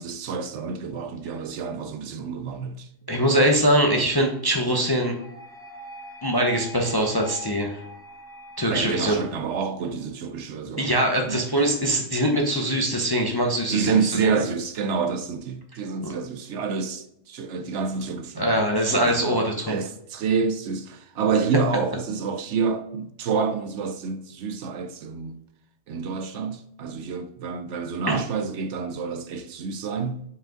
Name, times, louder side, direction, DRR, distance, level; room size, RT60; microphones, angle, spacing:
voice 1, 0.0-2.9 8.7-11.5 13.7-18.6 18.9-19.4 19.7-25.4 25.9-30.2, right 5 dB, 70° right, 0.9 m, -28 dB
voice 2, 3.1-5.1 6.2-7.8 8.6-9.2 10.8-14.4 16.0-16.1 18.4-19.7 28.1-28.2, right 1 dB, 25° left, 0.5 m, -22 dB
sound 1, 4.7-9.8, equal, 5° left, 0.8 m, -43 dB
5.2 x 5.1 x 3.7 m
omnidirectional pair, 1.3 m